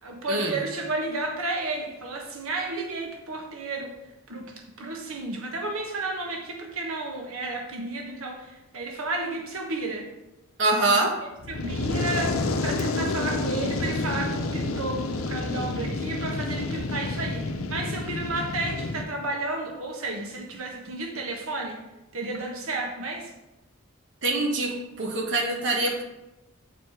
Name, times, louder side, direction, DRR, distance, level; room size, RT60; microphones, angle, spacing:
voice 1, 0.0-3.9 4.3-4.4 4.8-10.1 11.5-21.8 22.1-23.3, right 2 dB, 80° right, 1 dB, 1.2 m, -32 dB
voice 2, 10.6-11.2 24.2-26.0, right 2 dB, 55° right, 0 dB, 1.3 m, -24 dB
Fire, 11.4-19.0, left 3 dB, 85° left, 0.7 m, -29 dB
8.1 x 4.6 x 4.8 m, 0.96 s
head